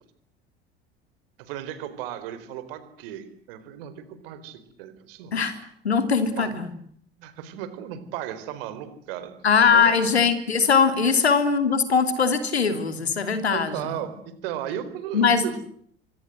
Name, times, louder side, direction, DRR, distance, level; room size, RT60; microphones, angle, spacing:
voice 1, 1.4-5.3 6.4-6.5 7.2-9.3 9.7-10.0 13.5-14.1 14.4-15.6, right 11 dB, 65° right, 12 dB, 4.3 m, -35 dB
voice 2, 5.3-6.7 9.4-14.0 15.1-15.4, left 5 dB, 85° left, 10 dB, 3.2 m, -21 dB
28.5 x 24.5 x 7.9 m, 0.65 s
figure-of-eight pair, 70°, 31 cm